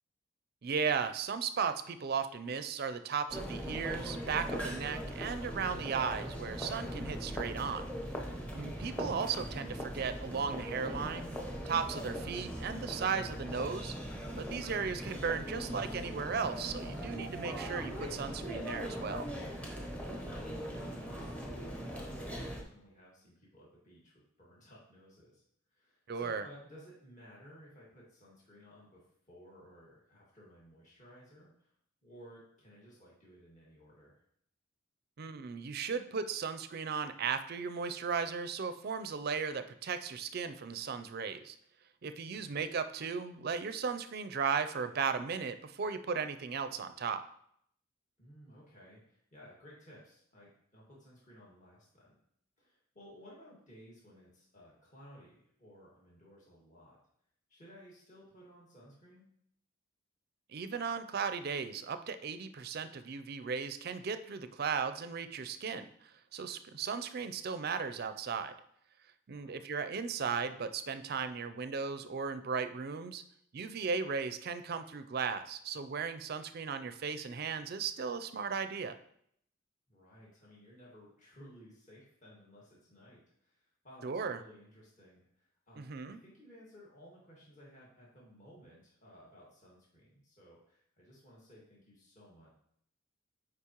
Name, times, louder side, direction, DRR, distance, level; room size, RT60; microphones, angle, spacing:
voice 1, 0.6-7.8 8.5-11.3 11.7-13.9 14.4-19.3 26.1-26.4 35.2-41.6 42.0-47.2 60.5-68.5 69.3-73.2 73.5-79.0 84.0-84.4 85.8-86.2, right 6 dB, 50° right, 11 dB, 0.4 m, -36 dB
sound 1, 3.3-22.6, equal, 5° left, 0.8 m, -40 dB
voice 2, 20.1-25.4 25.7-31.7 32.0-34.2 42.3-42.6 48.2-52.2 52.6-57.0 57.5-59.2 69.3-69.6 79.9-92.5, equal, 40° left, -5 dB, 1.8 m, -57 dB
8.3 x 4.9 x 3.0 m, 0.69 s
head